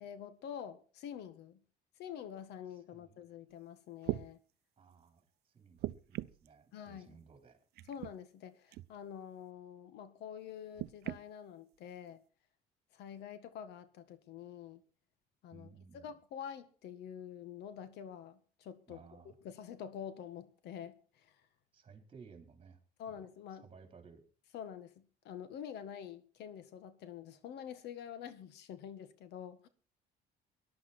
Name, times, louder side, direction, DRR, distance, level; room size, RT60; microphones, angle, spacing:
voice 1, 0.0-1.6 2.0-4.4 6.7-7.2 7.9-12.2 12.9-14.8 15.4-15.7 15.9-21.4 23.0-23.7 24.5-29.7, left 8 dB, 80° left, 1.7 m, -47 dB
Pool Table setting up pooltable balls, 3.5-3.6 4.0-4.3 5.8-6.5 7.7-8.1 8.7-8.9 10.7-11.2 12.1-12.2, right 16 dB, 70° right, 0.6 m, -39 dB
voice 2, 4.8-5.2 5.5-7.6 15.5-16.1 18.9-19.3 21.7-22.8 23.1-23.2 23.6-24.2, right 5 dB, 35° right, 4.3 m, -57 dB
19.0 x 11.5 x 4.5 m
cardioid pair, 110°, 17 cm